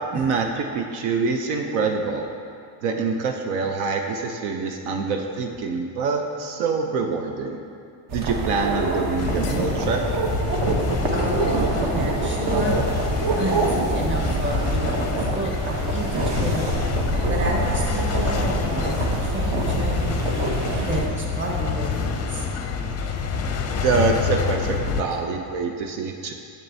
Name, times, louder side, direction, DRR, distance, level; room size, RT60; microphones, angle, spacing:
voice 1, 0.1-2.3 2.8-7.6 8.1-10.2 23.8-26.3, right 4 dB, 75° right, 3 dB, 0.7 m, -25 dB
sound 1, 8.1-21.1, right 2 dB, 55° right, 1.0 m, -25 dB
sound 2, 9.2-25.0, left 6 dB, 35° left, 0.5 m, -27 dB
voice 2, 11.1-12.8 13.3-16.7 17.3-22.5, right 1 dB, 25° right, -1 dB, 1.1 m, -30 dB
7.4 x 7.2 x 2.7 m, 2.5 s
cardioid pair, 110°, 50 cm